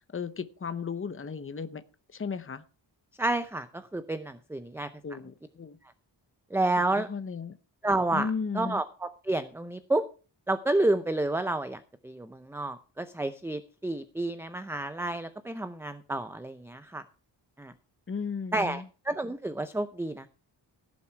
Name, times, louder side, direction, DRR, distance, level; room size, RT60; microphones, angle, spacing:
voice 1, 0.1-1.8 2.1-2.6 5.0-5.8 6.9-7.6 8.1-8.8 18.1-18.9, left 5 dB, 30° left, 12 dB, 0.8 m, -35 dB
voice 2, 3.2-4.9 6.5-7.1 7.8-10.0 10.5-17.0 17.6-17.7 18.5-20.3, right 2 dB, 5° right, 11 dB, 0.6 m, -30 dB
16.5 x 7.3 x 4.4 m, 0.36 s
wide cardioid pair, 130°, 44 cm